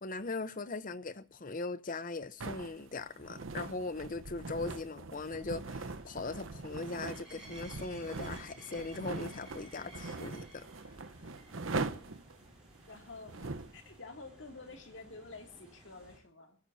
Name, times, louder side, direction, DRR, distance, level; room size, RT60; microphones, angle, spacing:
voice 1, 0.0-10.7, left 3 dB, 40° left, 0.8 m, -40 dB
sound 1, 2.4-13.8, right 3 dB, 75° right, 0.9 m, -42 dB
sound 2, 5.4-16.2, right 1 dB, 5° right, 7.5 m, -56 dB
voice 2, 12.9-16.6, left 3 dB, 65° left, 2.5 m, -50 dB
29.0 x 14.5 x 2.7 m
head